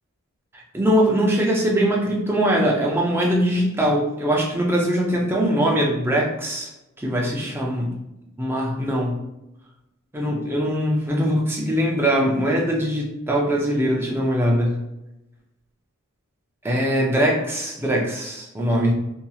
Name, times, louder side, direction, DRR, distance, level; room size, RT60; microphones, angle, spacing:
voice 1, 0.7-6.7 7.0-7.9 8.4-9.1 10.1-14.8 16.6-18.9, equal, 10° right, -1 dB, 0.5 m, -21 dB
2.8 x 2.8 x 2.3 m, 0.92 s
head